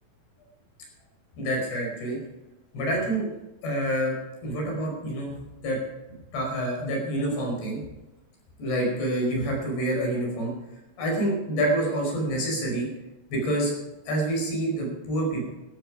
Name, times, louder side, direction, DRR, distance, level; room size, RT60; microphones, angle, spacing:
voice 1, 1.4-2.2 2.7-3.3 3.6-4.1 4.4-5.3 5.6-5.8 6.3-7.8 8.6-10.5 11.0-12.9 13.3-13.7 14.1-15.5, right 1 dB, 75° left, 0 dB, 7.1 m, -27 dB
16.5 x 14.0 x 4.9 m, 1.0 s
omnidirectional pair, 4.7 m